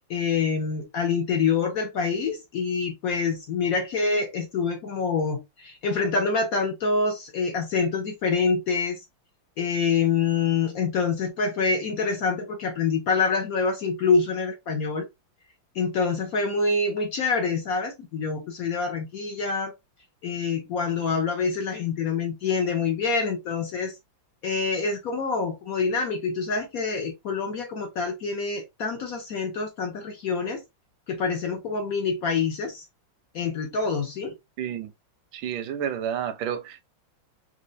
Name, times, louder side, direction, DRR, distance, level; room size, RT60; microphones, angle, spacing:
voice 1, 0.0-9.0 9.6-15.1 15.7-19.7 20.2-23.9 24.4-30.6 31.1-32.8 33.3-34.4, left 4 dB, 65° left, 0.9 m, -26 dB
voice 2, 34.6-34.9 35.3-36.8, right 9 dB, 85° right, 1.4 m, -30 dB
4.2 x 2.5 x 2.6 m
omnidirectional pair, 2.1 m